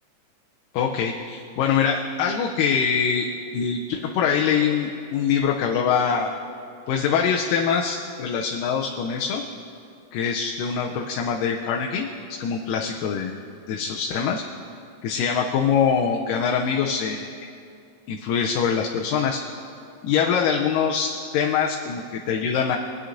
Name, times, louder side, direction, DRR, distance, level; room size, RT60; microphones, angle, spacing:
voice 1, 0.7-3.3 3.5-6.3 6.9-9.4 10.1-13.4 13.7-14.4 15.0-17.3 18.1-19.4 20.0-22.8, left 7 dB, 90° left, 0 dB, 2.2 m, -24 dB
19.0 x 9.3 x 2.5 m, 2.4 s
omnidirectional pair, 3.8 m